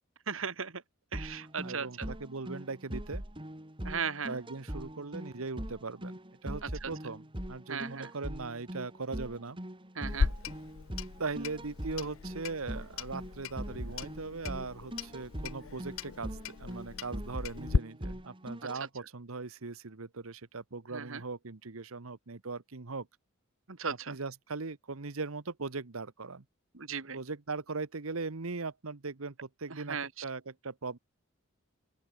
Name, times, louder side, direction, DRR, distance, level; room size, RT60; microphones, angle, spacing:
voice 1, 0.3-0.8 1.1-2.1 3.8-4.3 6.8-6.9 7.7-8.1 10.0-10.3 20.9-21.2 23.7-24.2 26.7-27.2 29.7-30.1, right 6 dB, 75° right, 1.9 m, -36 dB
sound 1, 1.1-18.8, equal, 25° right, 3.3 m, -42 dB
voice 2, 1.6-3.2 4.3-9.6 11.2-23.1 23.9-26.4 27.1-31.0, right 4 dB, 90° right, 1.2 m, -39 dB
Clock, 10.1-17.8, left 5 dB, 70° left, 0.5 m, -36 dB
open air
head